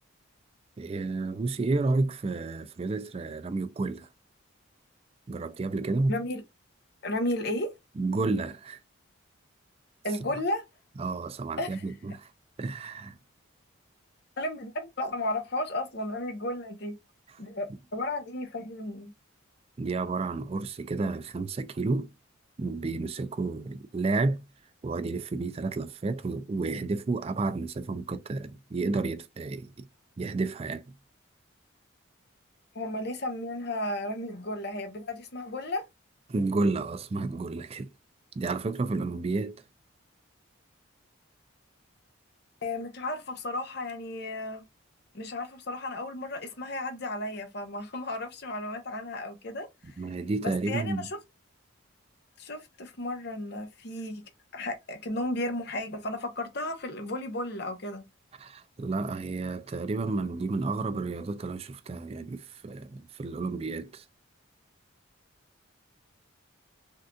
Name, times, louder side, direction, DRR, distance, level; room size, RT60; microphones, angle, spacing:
voice 1, 0.8-4.1 5.3-6.2 8.0-8.8 11.0-12.3 12.6-13.2 19.8-22.1 22.6-24.4 24.8-29.9 30.2-30.8 36.3-37.9 38.4-39.6 50.0-51.1 58.4-64.0, right 3 dB, 30° right, 0.3 m, -31 dB
voice 2, 6.1-6.4 7.0-7.7 10.0-10.6 11.6-11.8 14.4-17.0 17.4-19.1 32.7-35.9 42.6-44.6 45.1-49.9 50.4-51.2 52.4-54.2 54.5-58.0, left 1 dB, 50° left, 0.8 m, -34 dB
3.7 x 2.6 x 2.3 m
head